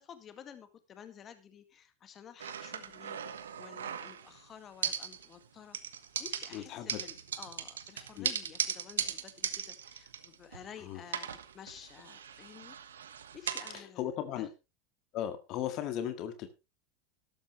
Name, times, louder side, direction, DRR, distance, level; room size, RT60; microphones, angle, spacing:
voice 1, 0.0-5.8 6.2-12.8 13.3-14.5, left 8 dB, 35° left, 10 dB, 1.9 m, -52 dB
sound 1, 2.4-4.4 4.8-5.5 5.7-10.7 11.1-13.8, right 8 dB, 85° right, 1.4 m, -38 dB
voice 2, 6.5-7.0 8.2-8.3 10.9-11.0 13.7-14.5 15.1-16.5, left 11 dB, 50° left, 9 dB, 1.9 m, -36 dB
13.0 x 12.5 x 3.1 m, 0.26 s
hypercardioid pair, 95°, 0 cm